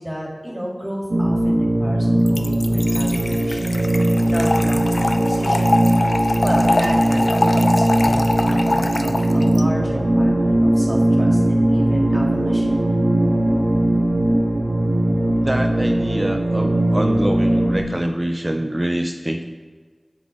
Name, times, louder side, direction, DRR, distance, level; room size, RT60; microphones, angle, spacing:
voice 1, 0.0-3.7 4.2-5.7 6.4-12.8, equal, 5° right, -4 dB, 2.8 m, -31 dB
sound 1, 1.1-17.8, right 1 dB, 70° right, 1.2 m, -19 dB
Trickle dribble / Fill (with liquid), 2.3-9.6, left 2 dB, 70° left, 0.6 m, -23 dB
voice 2, 15.4-19.4, right 1 dB, 30° right, 4 dB, 0.6 m, -25 dB
8.6 x 8.1 x 3.6 m, 1.5 s
wide cardioid pair, 50°, 0 cm